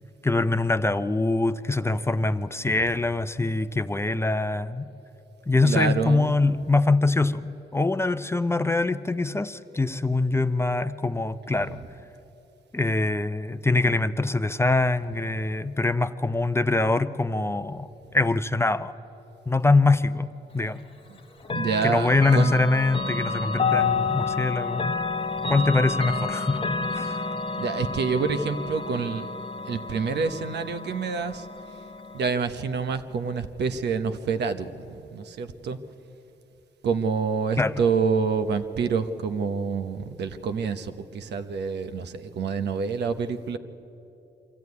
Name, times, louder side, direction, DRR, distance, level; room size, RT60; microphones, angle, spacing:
voice 1, 0.2-4.9 5.5-11.8 12.7-17.9 18.1-18.9 19.5-20.3 20.5-20.9 21.8-24.9 25.5-26.6 26.9-27.2 37.6-37.7, left 3 dB, 15° left, 12 dB, 0.6 m, -23 dB
voice 2, 5.6-6.4 11.5-11.8 21.1-21.2 21.5-22.5 23.8-24.1 27.6-29.3 29.7-31.5 32.1-35.8 36.8-43.6, right 5 dB, 75° right, 9 dB, 1.0 m, -27 dB
Chime / Clock, 21.4-32.3, left 4 dB, 30° left, 1.0 m, -30 dB
23.5 x 14.0 x 9.6 m, 2.9 s
cardioid pair, 90°, 18 cm